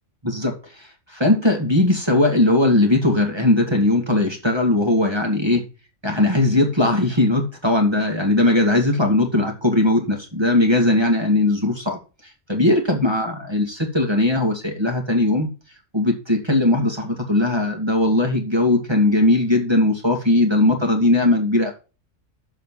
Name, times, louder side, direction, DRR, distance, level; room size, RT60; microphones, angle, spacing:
voice 1, 0.2-5.6 6.0-15.5 15.9-21.7, left 2 dB, 20° right, 2 dB, 2.3 m, -19 dB
7.4 x 6.4 x 7.4 m, 0.32 s
omnidirectional pair, 1.3 m